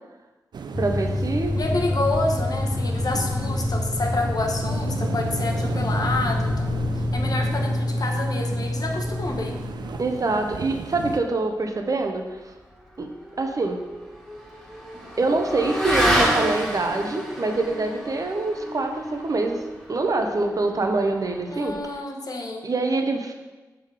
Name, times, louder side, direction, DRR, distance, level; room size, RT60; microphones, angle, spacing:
sound 1, 0.5-11.2, right 5 dB, 70° right, 0.4 m, -35 dB
sound 2, 0.7-10.1, left 2 dB, 20° left, 0.6 m, -27 dB
voice 1, 0.8-1.6 10.0-12.4 13.0-13.1 13.4-13.8 15.2-19.6 19.9-21.8 22.6-23.3, right 3 dB, 50° right, 4 dB, 0.8 m, -25 dB
voice 2, 1.5-9.6 21.5-22.6, left 2 dB, 55° left, 2 dB, 1.0 m, -29 dB
Motorcycle / Accelerating revving vroom, 13.0-21.8, equal, 5° left, 1.9 m, -29 dB
6.1 x 3.8 x 4.9 m, 1.2 s
cardioid pair, 45°, 8 cm